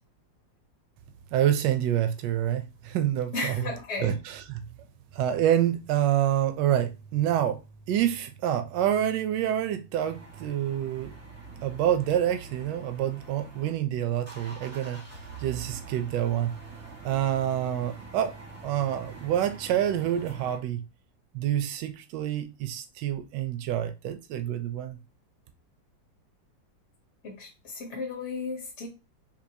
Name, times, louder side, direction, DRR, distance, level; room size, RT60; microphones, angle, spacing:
voice 1, 1.3-3.7 4.0-4.6 5.1-7.6 7.9-11.1 11.6-15.0 15.4-16.5 17.0-18.3 18.6-20.8 21.3-25.0, right 11 dB, 75° right, 1.1 m, -27 dB
voice 2, 3.3-4.1 27.2-28.9, left 3 dB, 50° left, 0.9 m, -34 dB
sound 1, 9.9-13.7 14.0-20.6, right 3 dB, 15° right, 0.6 m, -46 dB
3.8 x 2.7 x 2.7 m
omnidirectional pair, 2.0 m